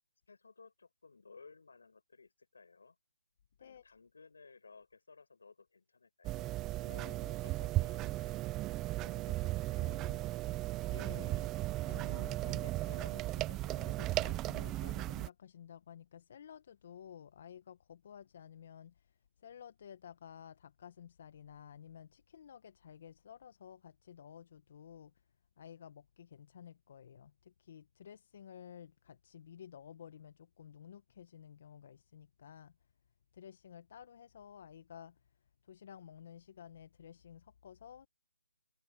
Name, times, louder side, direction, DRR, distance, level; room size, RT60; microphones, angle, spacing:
voice 1, 0.3-3.0 3.6-6.5 7.2-8.8 9.5-10.3, left 4 dB, 75° left, 7.5 m, -60 dB
sound 1, 6.2-15.3, right 17 dB, 15° right, 0.3 m, -36 dB
voice 2, 6.8-7.8 8.8-9.5 9.8-10.2 10.9-11.5 11.8-25.1 25.6-32.7 33.3-35.2 35.6-38.1, left 8 dB, 45° left, 1.3 m, -53 dB
hypercardioid pair, 155°, 0 cm